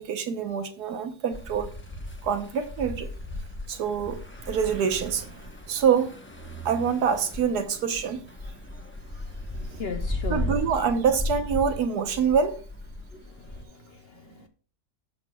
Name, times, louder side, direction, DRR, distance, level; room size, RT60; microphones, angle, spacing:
voice 1, 0.0-1.7 2.2-3.1 3.7-6.1 6.6-8.2 10.3-12.6 14.3-14.4, right 7 dB, 85° right, 1.5 m, -26 dB
sound 1, 1.3-13.6, left 1 dB, 10° left, 0.7 m, -36 dB
voice 2, 9.5-10.6 13.1-14.5, left 5 dB, 60° left, 0.7 m, -38 dB
15.0 x 6.4 x 2.3 m
omnidirectional pair, 1.6 m